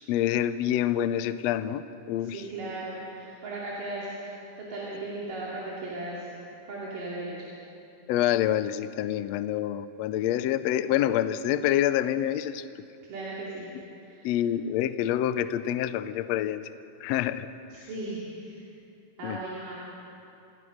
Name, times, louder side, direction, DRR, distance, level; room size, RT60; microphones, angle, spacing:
voice 1, 0.1-1.8 2.1-2.4 8.1-12.6 14.2-16.6 17.0-17.5 19.2-19.4, left 11 dB, 90° left, 13 dB, 1.5 m, -27 dB
voice 2, 2.2-6.3 6.7-7.5 13.1-13.7 14.0-14.4 17.7-18.7 19.2-19.7, right 2 dB, 75° right, -6 dB, 4.5 m, -37 dB
29.0 x 17.5 x 6.4 m, 2.7 s
omnidirectional pair, 3.8 m